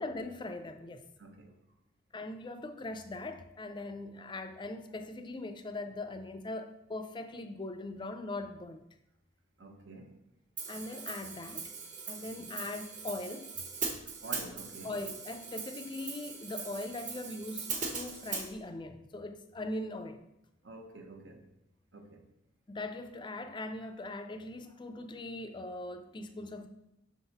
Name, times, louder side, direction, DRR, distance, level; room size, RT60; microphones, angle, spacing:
voice 1, 0.0-1.0 2.1-8.8 10.7-11.6 12.1-13.5 14.8-20.2 22.7-26.7, left 2 dB, 25° left, 0.4 m, -40 dB
voice 2, 1.2-1.6 9.6-10.2 12.2-12.5 14.2-14.9 20.6-21.5 21.9-22.2, right 2 dB, 70° right, 1.0 m, -48 dB
Hi-hat, 10.6-18.5, right 5 dB, 40° right, 1.0 m, -40 dB
5.9 x 3.9 x 4.0 m
head